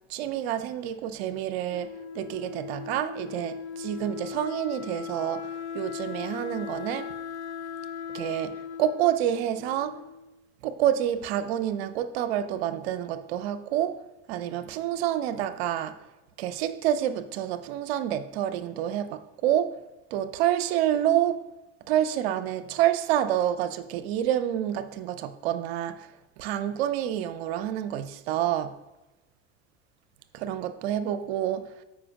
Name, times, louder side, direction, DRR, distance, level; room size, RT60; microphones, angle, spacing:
voice 1, 0.1-7.1 8.1-10.0 10.6-16.0 16.4-19.8 20.1-21.4 21.9-26.1 26.4-28.8 30.3-31.7, right 11 dB, 65° right, 0.7 m, -28 dB
Wind instrument woodwind instrument, 1.7-10.4, left 7 dB, 90° left, 0.5 m, -38 dB
14.0 x 5.1 x 2.5 m
hypercardioid pair, 70°, 33 cm